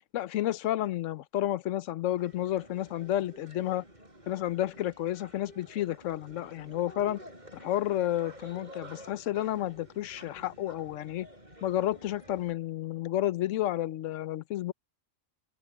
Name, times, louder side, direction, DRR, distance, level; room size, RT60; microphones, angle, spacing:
voice 1, 0.1-3.8 4.3-7.2 7.5-11.3 11.6-14.7, left 13 dB, 80° left, 1.0 m, -31 dB
sound 1, 2.2-12.5, right 1 dB, 35° right, 4.8 m, -51 dB
open air
omnidirectional pair, 1.3 m